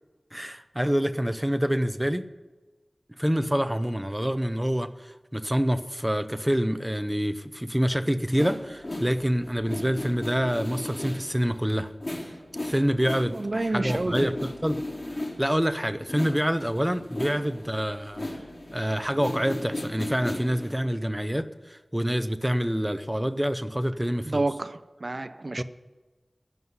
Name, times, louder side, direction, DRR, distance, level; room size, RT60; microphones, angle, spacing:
voice 1, 0.3-2.3 3.2-11.9 12.2-12.3 12.6-14.8 15.4-18.3 18.7-24.4 25.6-25.7, equal, 10° right, 0.7 m, -27 dB
sound 1, 8.3-15.7 16.0-20.7, left 1 dB, 50° left, 3.7 m, -36 dB
voice 2, 13.3-14.3 24.2-25.6, right 2 dB, 60° right, 0.4 m, -29 dB
15.5 x 5.6 x 9.6 m
wide cardioid pair, 40°, 0 cm